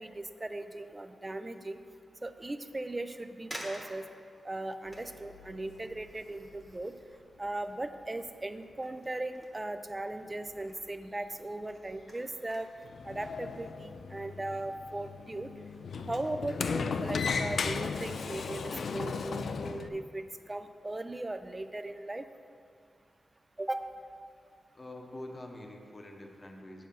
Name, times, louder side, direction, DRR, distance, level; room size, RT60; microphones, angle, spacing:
voice 1, 0.0-1.8 2.2-4.0 4.4-6.9 7.4-12.7 13.0-15.5 16.0-22.3 23.6-23.9, right 2 dB, 15° right, 9 dB, 0.4 m, -38 dB
sound 1, 1.1-1.5 2.1-2.2 3.0-3.1 3.5-8.5 8.7-10.2 10.5-10.9 11.4-12.9 13.3-13.5, equal, ahead, 1.0 m, -50 dB
sound 2, 4.8-13.7, left 4 dB, 75° left, 0.9 m, -61 dB
Sliding door, 12.8-19.9, left 5 dB, 60° left, 0.3 m, -35 dB
voice 2, 24.7-26.9, left 1 dB, 25° left, 2 dB, 0.9 m, -45 dB
8.0 x 7.4 x 5.4 m, 2.2 s
wide cardioid pair, 165°, 0 cm